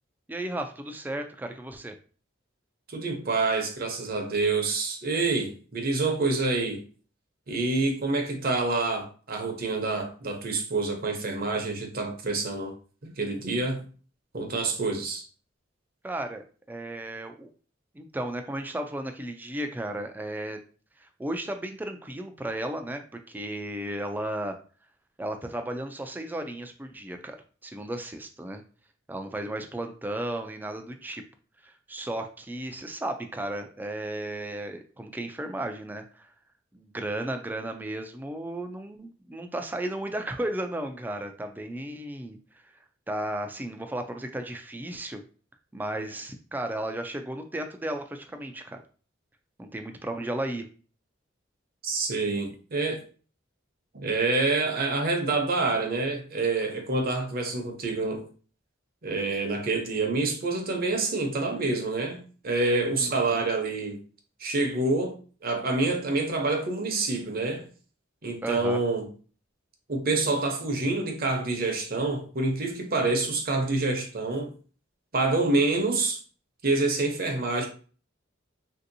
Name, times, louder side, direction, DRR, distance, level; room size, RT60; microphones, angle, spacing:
voice 1, 0.3-2.0 16.0-17.5 17.9-20.6 21.0-24.6 25.2-27.4 27.6-28.6 29.1-31.2 31.6-36.3 36.7-42.4 42.6-42.7 43.1-45.2 45.7-48.8 49.6-50.7 63.0-63.4 68.4-68.8, right 1 dB, 10° right, 0.3 m, -34 dB
voice 2, 2.9-6.8 7.5-12.7 13.0-13.8 14.3-15.2 51.8-53.0 53.9-58.2 59.0-64.0 64.4-67.6 68.2-69.1 69.9-74.5 75.1-76.2 76.6-77.7, right 3 dB, 50° right, 0.7 m, -27 dB
3.3 x 2.7 x 2.6 m
head